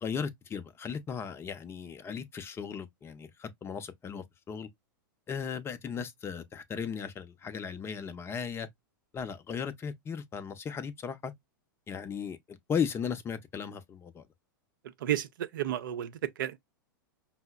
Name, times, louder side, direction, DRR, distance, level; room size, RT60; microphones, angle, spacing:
voice 1, 0.0-4.7 5.3-8.7 9.1-11.3 11.9-14.3, left 7 dB, 20° left, 0.6 m, -36 dB
voice 2, 15.0-16.6, right 12 dB, 70° right, 0.6 m, -32 dB
5.4 x 2.0 x 2.2 m
hypercardioid pair, 105°, 11 cm